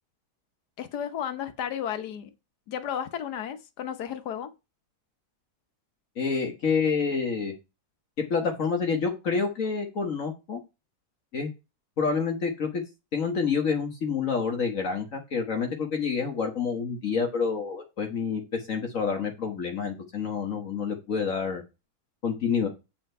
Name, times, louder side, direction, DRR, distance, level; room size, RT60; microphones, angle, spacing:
voice 1, 0.8-2.3 2.7-4.5, left 9 dB, 80° left, 1.5 m, -33 dB
voice 2, 6.2-7.5 8.3-10.6 11.3-11.5 12.0-12.8 13.1-21.6 22.2-22.7, left 5 dB, 55° left, 1.6 m, -28 dB
8.8 x 4.4 x 5.5 m
omnidirectional pair, 1.7 m